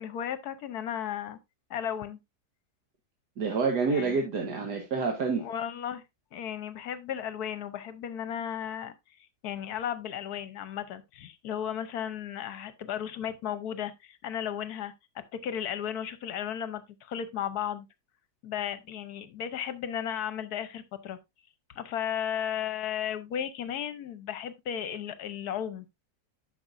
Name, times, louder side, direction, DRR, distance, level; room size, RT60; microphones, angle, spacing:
voice 1, 0.0-1.4 1.7-2.2 3.9-4.2 5.4-6.0 6.3-8.9 9.4-17.9 18.4-21.2 21.7-25.9, left 9 dB, 70° left, 1.2 m, -35 dB
voice 2, 3.4-5.5, right 4 dB, 75° right, 1.9 m, -28 dB
12.0 x 6.1 x 2.5 m
omnidirectional pair, 1.8 m